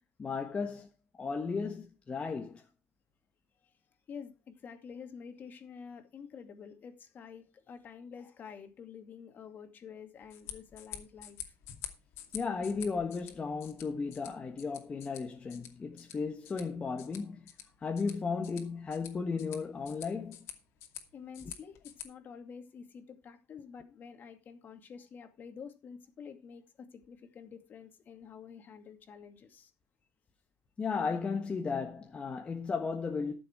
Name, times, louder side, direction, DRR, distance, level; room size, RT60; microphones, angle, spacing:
voice 1, 0.2-0.9 1.2-2.7 12.3-17.5 17.8-20.4 30.8-33.3, left 5 dB, 25° left, 1.4 m, -35 dB
voice 2, 4.1-11.6 15.3-15.5 21.1-29.7, left 6 dB, 45° left, 2.4 m, -49 dB
sound 1, 10.2-22.0, left 10 dB, 75° left, 2.5 m, -49 dB
14.0 x 7.1 x 4.6 m
cardioid pair, 135°, 5 cm